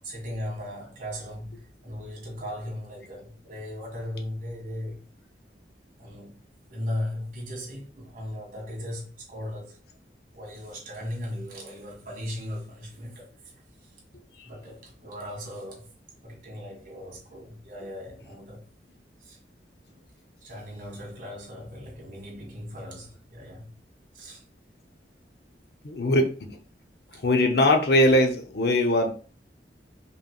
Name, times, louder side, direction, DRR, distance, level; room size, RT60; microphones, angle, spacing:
voice 1, 0.0-5.0 6.0-6.4 6.7-9.8 10.3-13.3 13.8-13.9 14.4-15.9 16.2-18.6 19.2-19.4 20.4-23.7 24.1-24.4, left 1 dB, 50° right, 1.7 m, -37 dB
voice 2, 25.8-26.6 27.1-29.1, left 1 dB, 60° left, 0.6 m, -21 dB
5.0 x 3.2 x 2.3 m
head